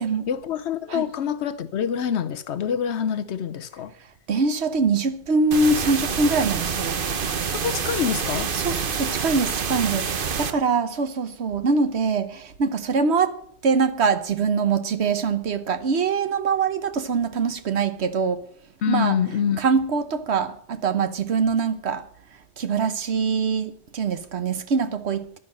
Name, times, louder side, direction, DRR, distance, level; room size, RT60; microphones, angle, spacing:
voice 1, 0.3-3.9 7.6-8.5 18.8-19.6, left 8 dB, 80° left, 1.0 m, -26 dB
voice 2, 4.3-7.0 8.5-13.4 13.6-18.4 18.9-19.1 19.6-22.1 22.6-25.4, right 4 dB, 75° right, 1.3 m, -23 dB
sound 1, 5.5-10.5, right 6 dB, 55° right, 1.1 m, -27 dB
11.0 x 10.0 x 7.5 m
omnidirectional pair, 1.1 m